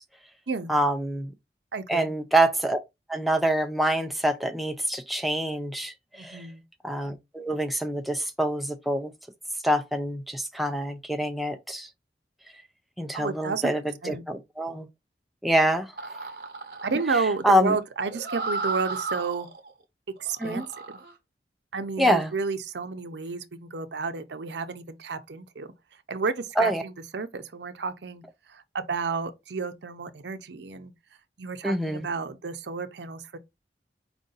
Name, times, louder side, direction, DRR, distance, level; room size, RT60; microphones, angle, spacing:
voice 1, 0.7-1.3 1.9-2.8 3.1-6.5 6.8-9.1 9.6-11.9 13.0-14.9 15.4-15.9 17.4-17.8 20.4-20.6 22.0-22.3 26.6-26.8 31.6-32.1, right 1 dB, ahead, 0.3 m, -25 dB
voice 2, 1.7-2.1 6.2-6.6 13.1-13.7 14.0-14.2 16.8-19.5 20.2-20.6 21.7-25.7 26.1-28.2 28.5-30.9 31.4-33.4, right 4 dB, 75° right, 0.6 m, -31 dB
sound 1, 15.9-19.7 20.2-21.1, right 3 dB, 55° right, 0.9 m, -35 dB
4.7 x 2.6 x 3.9 m
head